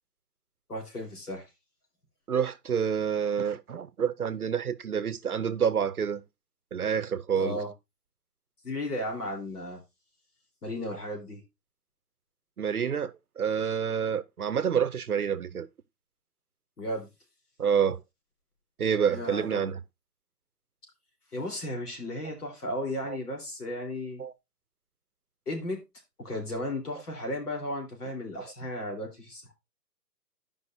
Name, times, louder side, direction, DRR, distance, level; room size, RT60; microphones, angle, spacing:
voice 1, 0.7-1.5 7.4-7.7 8.6-9.8 10.6-11.4 16.8-17.1 19.0-19.6 21.3-24.2 25.5-25.8 26.2-29.5, left 1 dB, 65° left, 3.7 m, -35 dB
voice 2, 2.3-6.2 6.7-7.6 12.6-15.7 17.6-18.0 18.8-19.8 23.1-23.2 24.2-24.3, right 7 dB, 65° right, 0.8 m, -28 dB
13.0 x 5.3 x 2.6 m
hypercardioid pair, 180°, 49 cm